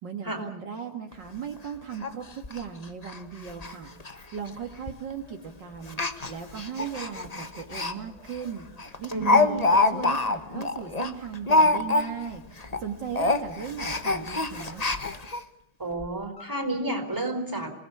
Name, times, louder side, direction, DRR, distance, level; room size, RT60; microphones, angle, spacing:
voice 1, 0.0-6.0 6.3-14.8, right 7 dB, 60° right, 3 dB, 2.3 m, -37 dB
Speech, 1.1-1.2 1.6-1.7 2.0-2.1 2.4-2.6 3.0-3.2 3.5-3.7 4.0-4.1 4.9-5.1 5.9-7.9 8.3-8.4 8.8-12.3 12.6-12.8 13.1-15.4 16.0-16.1 16.4-16.5, left 2 dB, 20° left, 1.2 m, -25 dB
voice 2, 9.1-9.5 15.8-17.7, right 2 dB, 10° right, 5 dB, 4.4 m, -30 dB
27.0 x 19.5 x 8.5 m, 0.73 s
omnidirectional pair, 2.3 m